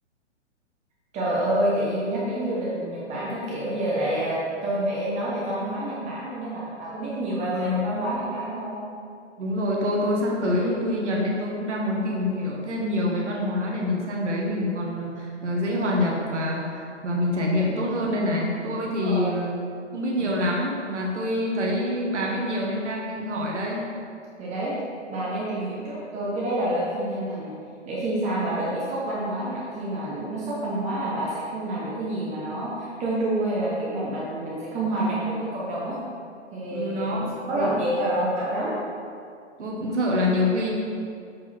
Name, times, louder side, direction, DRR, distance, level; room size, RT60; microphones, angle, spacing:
voice 1, 1.1-8.8 19.0-19.3 20.3-20.4 24.4-24.8 25.1-27.5 27.9-36.0 36.5-38.8, right 1 dB, 20° right, -6 dB, 1.0 m, -28 dB
voice 2, 7.5-7.9 9.4-19.6 19.9-23.9 36.7-37.8 39.6-40.7, left 1 dB, 75° right, -2 dB, 1.4 m, -26 dB
7.4 x 4.1 x 4.2 m, 2.4 s
hypercardioid pair, 130°, 36 cm